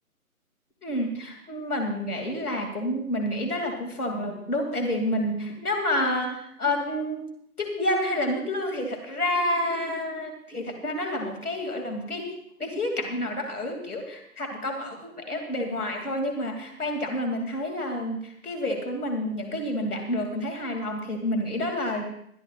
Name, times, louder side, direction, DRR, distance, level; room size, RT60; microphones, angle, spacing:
voice 1, 0.8-7.3 7.6-22.0, left 1 dB, 75° left, 3 dB, 2.6 m, -29 dB
22.0 x 12.5 x 2.4 m, 0.71 s
figure-of-eight pair, 160°, 45 cm